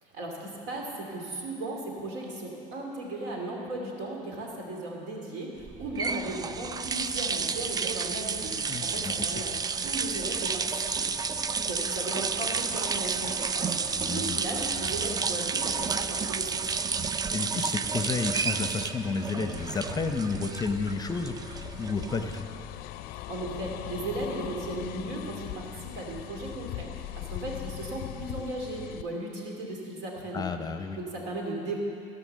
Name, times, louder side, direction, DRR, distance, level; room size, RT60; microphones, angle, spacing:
voice 1, 0.0-9.5 9.8-11.1 11.5-13.7 14.1-16.7 23.1-30.5 31.0-31.8, right 1 dB, 75° right, 0 dB, 2.6 m, -36 dB
sound 1, 5.6-22.7, right 5 dB, 25° right, 0.4 m, -31 dB
voice 2, 8.7-9.4 13.9-14.4 17.3-22.5 30.3-31.0, left 4 dB, 25° left, 7 dB, 0.7 m, -32 dB
sound 2, 19.5-29.0, left 14 dB, 65° left, 0.4 m, -40 dB
16.0 x 5.8 x 6.5 m, 2.7 s
supercardioid pair, 95°, 17 cm